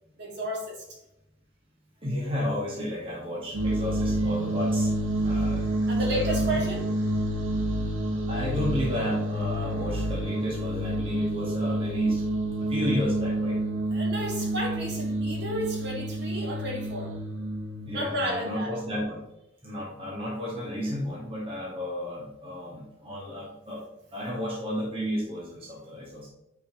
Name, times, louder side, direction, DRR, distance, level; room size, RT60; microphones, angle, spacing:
voice 1, 0.2-1.0 5.9-6.9 13.9-17.1 17.9-18.7, right 1 dB, 60° right, -3 dB, 2.4 m, -32 dB
voice 2, 2.0-4.9 5.2-5.7 6.1-6.5 8.3-12.3 12.6-13.6 17.9-19.2 19.6-23.8 24.1-26.3, equal, 30° right, -5 dB, 1.8 m, -32 dB
sound 1, 3.5-18.1, right 1 dB, 90° right, 1.1 m, -28 dB
9.6 x 4.9 x 3.1 m, 0.86 s
head